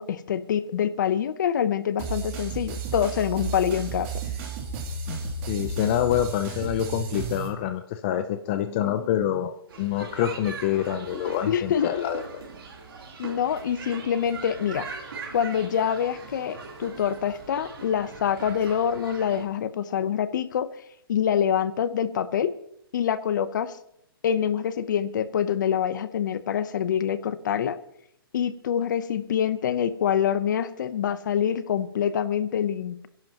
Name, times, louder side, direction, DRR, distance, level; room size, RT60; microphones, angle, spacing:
voice 1, 0.0-4.1 11.5-12.0 13.2-14.9 15.3-20.7 21.1-22.5 22.9-23.8 24.2-27.8 28.3-33.1, left 8 dB, 55° left, 14 dB, 0.9 m, -25 dB
sound 1, 2.0-7.5, right 4 dB, 30° right, 3.0 m, -33 dB
voice 2, 5.5-9.5 9.8-12.4, left 11 dB, 30° left, 9 dB, 0.6 m, -26 dB
sound 2, 9.7-19.4, right 4 dB, 75° right, 3.7 m, -41 dB
26.5 x 11.5 x 3.0 m, 0.73 s
hypercardioid pair, 160°, 12 cm